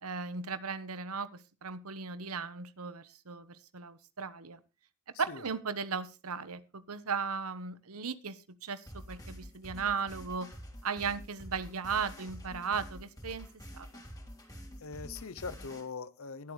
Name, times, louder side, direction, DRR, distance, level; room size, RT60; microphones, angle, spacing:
voice 1, 0.0-4.6 5.2-10.5 10.8-13.5 13.7-13.9, right 5 dB, 85° right, 1.1 m, -36 dB
voice 2, 5.1-5.4 14.8-16.5, left 4 dB, 70° left, 0.7 m, -42 dB
sound 1, 8.9-15.8, equal, 15° left, 3.3 m, -47 dB
20.5 x 8.1 x 3.2 m
head